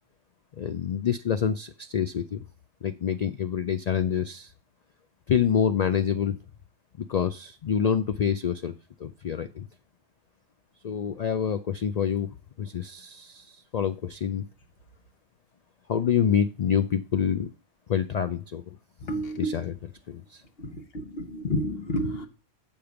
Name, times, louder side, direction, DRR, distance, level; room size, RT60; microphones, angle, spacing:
voice 1, 0.6-2.4 2.8-4.5 5.3-6.4 7.0-8.7 9.0-9.7 10.8-12.3 12.6-14.4 15.9-17.5 17.9-18.6 19.4-19.7 20.1-20.4, left 8 dB, 85° left, 10 dB, 0.3 m, -27 dB
voice 2, 19.0-19.6 20.6-22.3, equal, 55° left, 8 dB, 1.2 m, -30 dB
7.2 x 5.1 x 6.9 m, 0.34 s
omnidirectional pair, 1.3 m